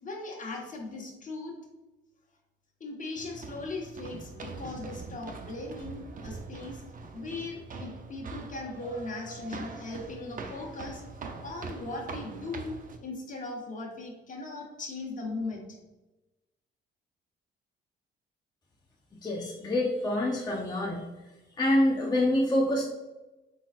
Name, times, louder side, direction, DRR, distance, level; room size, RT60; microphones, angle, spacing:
voice 1, 0.0-1.6 2.8-6.8 7.1-11.0 11.4-15.8, left 2 dB, 40° left, 0 dB, 1.3 m, -38 dB
sound 1, 3.2-13.0, right 4 dB, 45° right, 0.7 m, -43 dB
voice 2, 19.2-21.1 21.6-22.8, left 1 dB, 20° left, -3 dB, 0.7 m, -26 dB
5.2 x 3.9 x 2.5 m, 1.1 s
cardioid pair, 90°, 20 cm